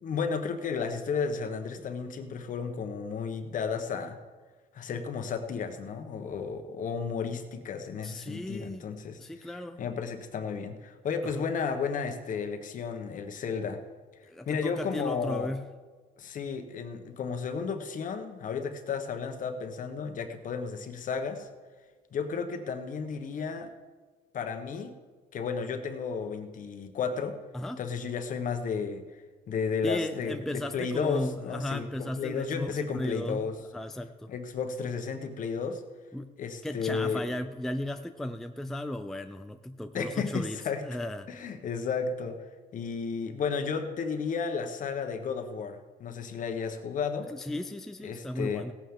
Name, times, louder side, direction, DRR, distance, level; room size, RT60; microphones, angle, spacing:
voice 1, 0.0-4.2 4.7-9.5 9.8-13.8 14.5-15.5 16.2-21.5 22.1-23.7 24.3-24.9 25.3-27.4 27.8-29.0 29.5-33.5 34.3-35.8 36.4-37.2 39.9-40.8 41.3-42.4 42.7-47.3 48.0-48.7, left 5 dB, 50° left, 6 dB, 1.2 m, -33 dB
voice 2, 8.0-8.8 9.2-9.8 11.3-11.5 14.3-15.7 27.5-27.8 29.8-34.3 36.1-36.3 36.6-41.3 47.3-48.7, left 1 dB, ahead, 7 dB, 0.4 m, -35 dB
17.0 x 8.8 x 3.8 m, 1.4 s
cardioid pair, 110°, 17 cm